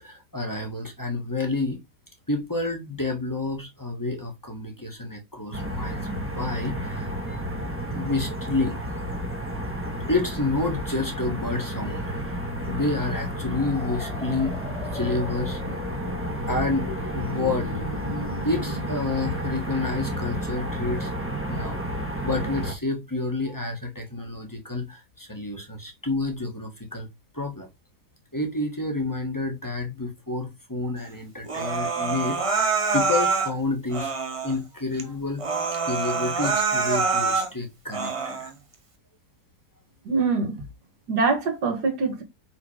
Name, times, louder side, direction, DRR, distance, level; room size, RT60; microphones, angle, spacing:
voice 1, 0.0-1.8 2.3-7.4 7.9-8.8 10.1-12.2 12.7-15.8 16.5-17.7 18.4-21.1 21.5-21.8 22.2-27.1 27.3-27.7 28.3-38.5, left 3 dB, 10° left, 1.2 m, -29 dB
sound 1, 5.5-22.7, equal, 10° right, 1.1 m, -31 dB
sound 2, 13.5-18.9, left 4 dB, 65° left, 0.3 m, -38 dB
Human voice, 31.5-33.5 33.9-34.6 35.0-35.1 35.4-37.5 37.9-38.5, right 4 dB, 25° right, 0.7 m, -25 dB
voice 2, 40.1-40.6 41.1-42.2, right 4 dB, 65° right, 2.0 m, -24 dB
5.8 x 3.8 x 4.9 m
omnidirectional pair, 1.9 m